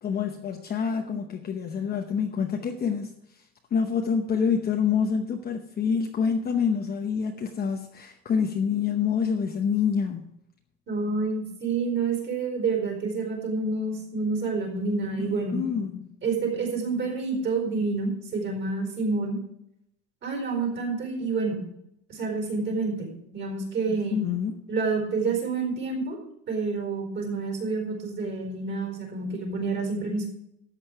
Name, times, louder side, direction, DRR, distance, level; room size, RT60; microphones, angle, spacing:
voice 1, 0.0-3.4 3.7-10.2 15.2-16.1 23.9-24.6, left 6 dB, 30° left, 3 dB, 0.9 m, -27 dB
voice 2, 10.9-15.6 16.2-19.4 20.2-21.6 22.1-24.2 24.7-26.2 26.5-30.3, right 4 dB, 40° right, 1 dB, 4.4 m, -28 dB
13.5 x 8.6 x 4.7 m, 0.78 s
cardioid pair, 165°, 31 cm